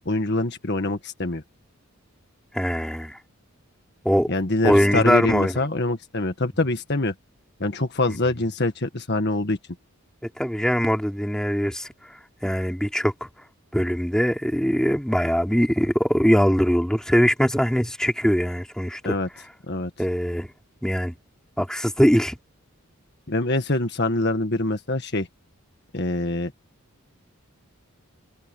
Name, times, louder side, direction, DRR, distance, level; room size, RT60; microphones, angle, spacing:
voice 1, 0.0-1.4 4.3-7.1 7.6-9.6 19.0-19.3 19.7-19.9 23.3-25.3 25.9-26.5, left 2 dB, 50° left, 1.7 m, -24 dB
voice 2, 2.5-3.2 4.0-4.3 4.6-5.6 8.1-8.2 10.4-11.9 12.4-13.1 13.7-19.2 20.0-20.5 20.8-21.1 21.6-22.4, equal, 5° left, 3.2 m, -21 dB
head